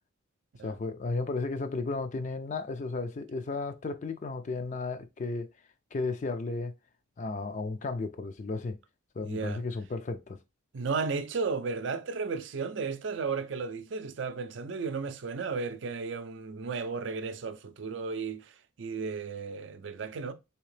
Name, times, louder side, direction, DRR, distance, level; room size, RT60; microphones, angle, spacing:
voice 1, 0.6-5.5 5.9-6.7 7.2-8.8 9.2-10.4, left 3 dB, 35° left, 0.3 m, -34 dB
voice 2, 9.2-9.6 10.7-18.5 18.8-20.3, right 4 dB, 60° right, 0.4 m, -34 dB
3.5 x 2.8 x 3.2 m
head